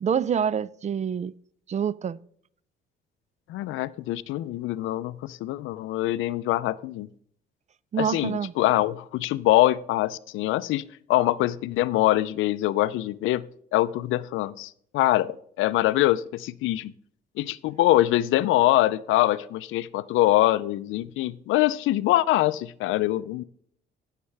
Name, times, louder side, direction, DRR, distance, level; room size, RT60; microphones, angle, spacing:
voice 1, 0.0-1.3 1.7-2.2 7.9-8.5, right 7 dB, 35° right, 0.4 m, -26 dB
voice 2, 3.5-7.1 8.0-13.5 13.7-16.9 17.4-23.4, left 15 dB, 90° left, 0.5 m, -24 dB
15.5 x 6.6 x 3.3 m
cardioid pair, 90°, 20 cm